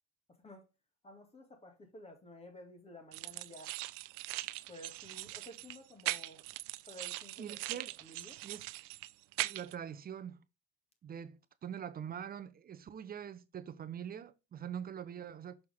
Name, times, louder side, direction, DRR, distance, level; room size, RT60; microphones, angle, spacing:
voice 1, 1.0-3.7 4.7-6.4 6.9-7.7 8.0-8.4, left 1 dB, 15° left, 2.0 m, -53 dB
sound 1, 3.1-9.7, right 20 dB, 65° right, 0.5 m, -41 dB
voice 2, 7.4-8.0 8.4-8.7 9.4-10.4 11.0-15.6, right 8 dB, 25° right, 0.7 m, -44 dB
6.5 x 4.5 x 3.5 m
supercardioid pair, 100°, 35 cm